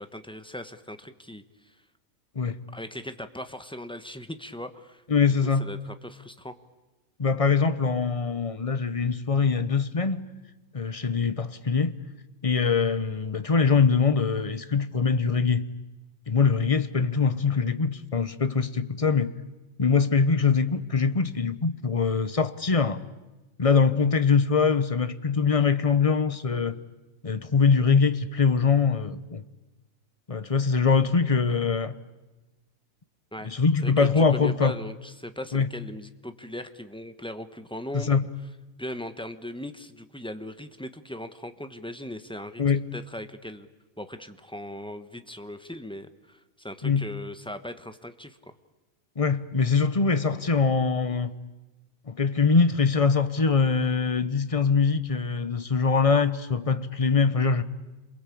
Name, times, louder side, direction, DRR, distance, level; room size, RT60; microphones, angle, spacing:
voice 1, 0.0-1.8 2.7-5.0 5.4-6.6 33.3-33.5 33.8-38.2 38.8-42.6 42.9-43.7 44.0-48.5, left 1 dB, 5° left, 1.1 m, -39 dB
voice 2, 5.1-5.7 7.2-10.3 10.7-11.9 12.4-15.7 16.3-19.3 19.8-23.0 23.6-26.8 27.2-29.4 30.3-32.0 33.4-34.7 35.5-35.7 37.9-38.2 42.6-42.8 46.8-47.1 49.2-51.4 52.1-57.6, left 5 dB, 30° left, 0.9 m, -23 dB
28.0 x 22.5 x 8.5 m
omnidirectional pair, 1.5 m